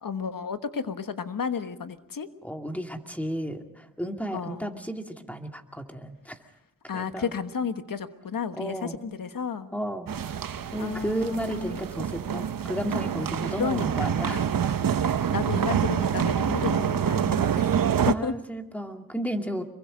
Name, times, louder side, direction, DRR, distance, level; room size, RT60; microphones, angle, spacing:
voice 1, 0.0-2.3 4.3-4.8 6.9-9.7 10.8-11.8 13.6-14.5 15.3-17.4 18.1-18.3, left 6 dB, 85° left, 9 dB, 1.3 m, -32 dB
voice 2, 2.4-6.4 6.9-7.3 8.5-9.0 9.7-10.3 10.7-14.4 18.1-19.6, right 1 dB, 5° left, 4 dB, 2.3 m, -33 dB
sound 1, 10.1-18.1, right 8 dB, 85° right, 0.8 m, -26 dB
26.0 x 23.0 x 5.1 m, 0.88 s
wide cardioid pair, 65°, 33 cm